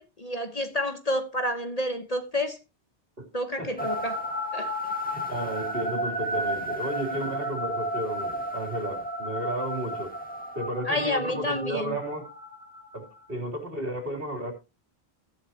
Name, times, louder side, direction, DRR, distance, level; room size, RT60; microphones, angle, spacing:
voice 1, 0.0-2.6 3.3-4.2 4.5-4.9 7.1-7.2 10.9-12.0, left 1 dB, 35° left, 1.1 m, -29 dB
voice 2, 3.6-3.9 5.1-10.2 10.5-12.2 12.9-14.5, right 1 dB, 60° right, 3.6 m, -33 dB
sound 1, 3.8-13.2, equal, 10° left, 2.0 m, -33 dB
15.5 x 10.0 x 2.9 m
omnidirectional pair, 1.1 m